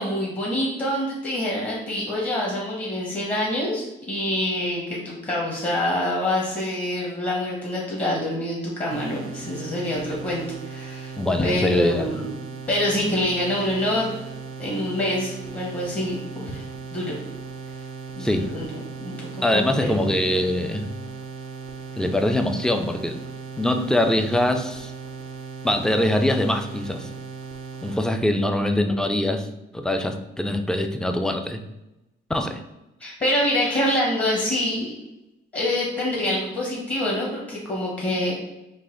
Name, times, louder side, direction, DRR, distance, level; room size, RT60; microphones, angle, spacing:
voice 1, 0.0-12.3 12.7-14.1 14.6-16.6 16.9-17.1 18.2-19.3 19.5-20.1 33.0-34.9 35.5-38.3, left 1 dB, 30° left, -4 dB, 1.1 m, -26 dB
sound 1, 8.9-28.0, right 5 dB, 90° right, 0.6 m, -37 dB
voice 2, 11.2-12.1 18.2-18.5 19.4-20.9 22.0-23.2 23.6-24.9 25.6-27.1 27.8-29.5 29.7-31.6 32.3-32.6 33.0-33.1 33.9-34.0, left 1 dB, 5° left, 6 dB, 0.4 m, -23 dB
4.0 x 2.4 x 3.8 m, 0.97 s
cardioid pair, 90°, 20 cm